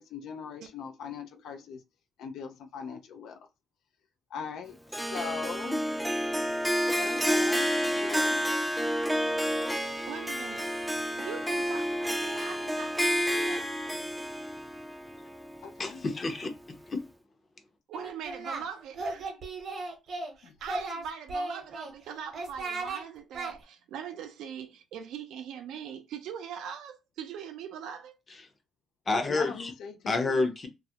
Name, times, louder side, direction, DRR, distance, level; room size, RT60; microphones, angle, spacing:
voice 1, 0.0-1.8 2.2-3.5 4.3-4.8 5.1-5.8 7.0-7.7 7.9-8.5 15.6-16.0 20.4-20.6 29.3-30.5, left 6 dB, 80° left, 0.3 m, -40 dB
Harp, 4.9-16.2, equal, 5° right, 0.3 m, -30 dB
voice 2, 10.1-10.7 11.2-13.7 17.9-19.4 20.4-28.2, right 8 dB, 85° right, 0.4 m, -41 dB
voice 3, 15.8-17.0 28.3-28.5 29.1-29.7 30.1-30.7, left 3 dB, 35° left, 0.6 m, -29 dB
Singing, 17.9-18.6 18.9-20.3 20.6-21.9 22.3-23.0 23.3-23.5, right 3 dB, 55° right, 0.8 m, -35 dB
2.3 x 2.0 x 2.8 m
cardioid pair, 90°, 0 cm